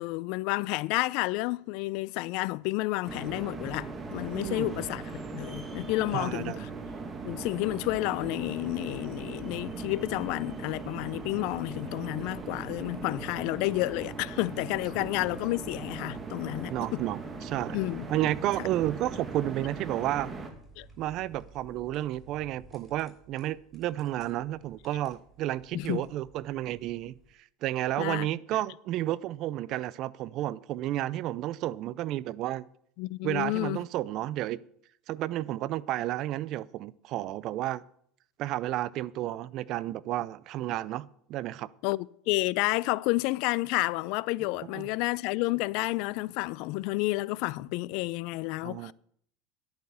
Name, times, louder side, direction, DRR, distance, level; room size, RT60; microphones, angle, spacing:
voice 1, 0.0-6.7 7.2-17.0 17.7-18.1 20.8-20.9 25.7-26.0 28.0-28.3 33.0-33.8 41.8-48.9, left 21 dB, 65° left, 0.4 m, -30 dB
sound 1, 3.0-20.5, right 4 dB, 25° right, 2.0 m, -39 dB
voice 2, 4.3-4.8 6.1-6.7 15.0-15.1 16.7-17.8 18.1-20.3 21.0-27.1 27.6-32.7 33.2-34.6 35.1-37.8 38.4-41.7 44.7-44.9 48.6-48.9, right 14 dB, 55° right, 0.5 m, -32 dB
sound 2, 20.0-27.3, right 3 dB, ahead, 6.0 m, -57 dB
10.5 x 8.8 x 6.9 m
supercardioid pair, 105°, 0 cm